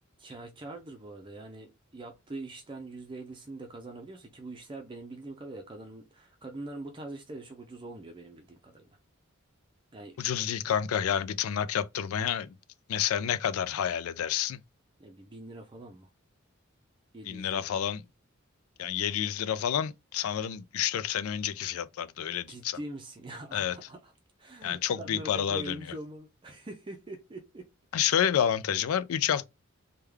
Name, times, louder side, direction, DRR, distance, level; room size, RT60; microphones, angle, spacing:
voice 1, 0.2-8.9 9.9-10.2 15.0-16.1 17.1-17.6 22.5-24.1 24.4-27.7 28.1-28.2, right 2 dB, 25° right, 0.5 m, -43 dB
voice 2, 10.2-12.5 12.9-14.6 17.3-18.0 18.8-22.8 23.5-23.8 24.6-25.7 27.9-29.5, left 9 dB, 80° left, 0.4 m, -29 dB
3.4 x 2.2 x 3.2 m
head